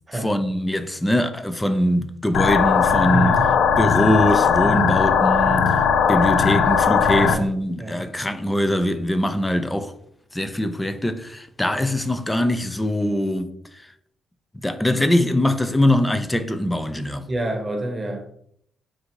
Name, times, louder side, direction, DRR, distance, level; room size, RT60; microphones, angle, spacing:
voice 1, 0.1-3.4 3.8-5.8 6.1-9.9 10.3-13.5 14.6-17.3, left 1 dB, 10° left, 0.4 m, -22 dB
sound 1, 2.3-7.3, left 7 dB, 75° left, 0.4 m, -18 dB
voice 2, 3.1-3.5 7.2-7.5 7.8-8.0 17.3-18.3, right 1 dB, 20° right, 0.9 m, -28 dB
3.8 x 2.6 x 4.5 m
cardioid pair, 90°, 0 cm